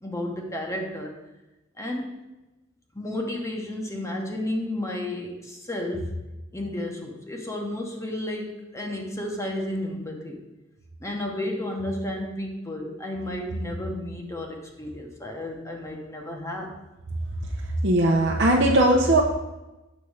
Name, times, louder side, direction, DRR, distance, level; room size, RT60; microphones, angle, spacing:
voice 1, 0.0-1.1 1.8-2.2 2.9-6.2 6.5-10.4 11.0-16.7, left 1 dB, 15° left, 1 dB, 1.0 m, -32 dB
voice 2, 17.8-19.2, right 1 dB, 60° right, -2 dB, 0.8 m, -19 dB
7.2 x 4.2 x 6.4 m, 1.0 s
head